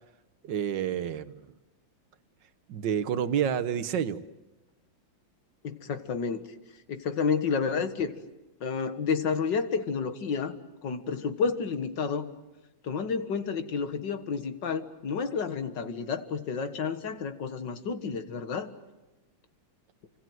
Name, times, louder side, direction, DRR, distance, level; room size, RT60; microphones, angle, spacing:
voice 1, 0.4-1.3 2.7-4.2, right 8 dB, 65° right, 13 dB, 1.8 m, -29 dB
voice 2, 5.6-6.4 6.9-8.1 8.6-10.6 10.8-12.3 12.8-18.7, left 5 dB, 65° left, 10 dB, 2.2 m, -30 dB
29.0 x 25.5 x 7.8 m, 1.1 s
omnidirectional pair, 2.1 m